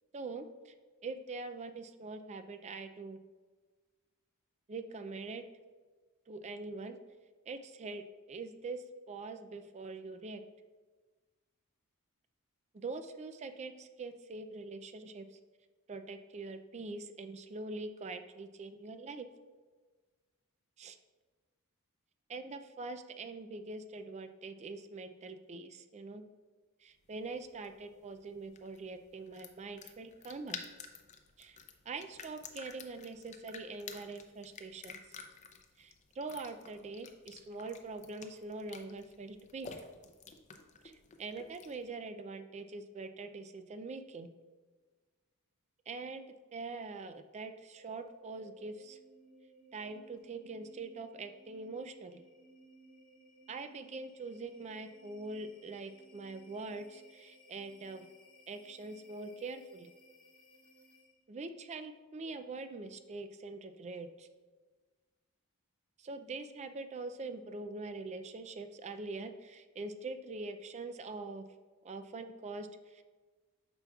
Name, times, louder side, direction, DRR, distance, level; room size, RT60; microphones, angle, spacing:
voice 1, 0.1-0.7 1.0-3.2 4.7-5.4 6.3-7.0 7.5-8.0 8.3-10.4 12.7-15.2 15.9-19.3 20.8-21.0 22.3-26.2 26.8-30.6 31.4-31.6 31.9-35.0 35.8-39.7 40.8-44.3 45.9-46.3 46.5-49.0 49.7-52.2 53.5-58.1 58.5-59.9 61.3-64.3 66.0-71.4 71.8-73.0, right 3 dB, 30° right, 9 dB, 0.4 m, -43 dB
sound 1, 27.0-41.9, left 5 dB, 30° left, 0.5 m, -51 dB
sound 2, 47.7-61.3, right 1 dB, 5° left, 1.6 m, -61 dB
8.9 x 5.9 x 2.3 m, 1.4 s
head